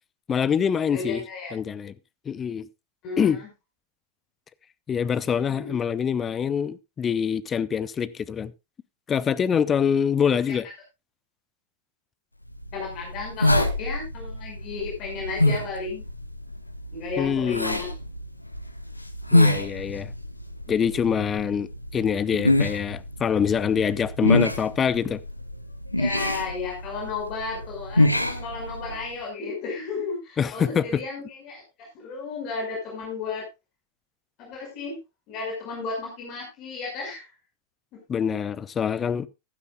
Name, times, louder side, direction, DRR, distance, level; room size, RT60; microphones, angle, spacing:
voice 1, 0.3-1.2 1.5-1.9 2.3-2.7 3.2-3.4 4.9-8.5 9.1-10.7 17.2-17.8 19.3-20.1 20.7-21.7 21.9-25.2 30.4-31.0 38.1-39.3, left 7 dB, 20° left, 0.6 m, -25 dB
voice 2, 0.9-1.5 3.0-3.5 5.5-5.8 10.5-10.6 12.7-16.0 16.9-17.9 26.0-31.6 31.9-33.4 34.4-35.0 35.3-37.3 37.9-38.0, left 4 dB, 40° left, 5.5 m, -33 dB
sound 1, 12.5-29.1, left 1 dB, 85° left, 0.9 m, -26 dB
15.0 x 12.0 x 2.4 m
figure-of-eight pair, 90°, 0 cm